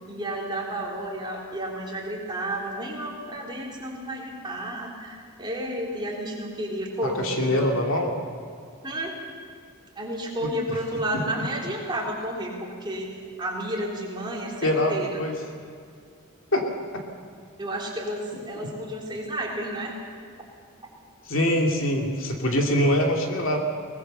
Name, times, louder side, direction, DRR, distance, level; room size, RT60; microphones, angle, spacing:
voice 1, 0.1-7.7 8.8-9.1 10.0-15.2 17.6-19.9, right 1 dB, 20° right, -2 dB, 3.9 m, -31 dB
voice 2, 7.0-8.1 10.4-10.5 14.6-14.9 15.2-15.3 16.5-16.6 21.3-23.6, left 1 dB, 65° left, 1 dB, 2.8 m, -23 dB
22.5 x 20.5 x 6.8 m, 2.2 s
head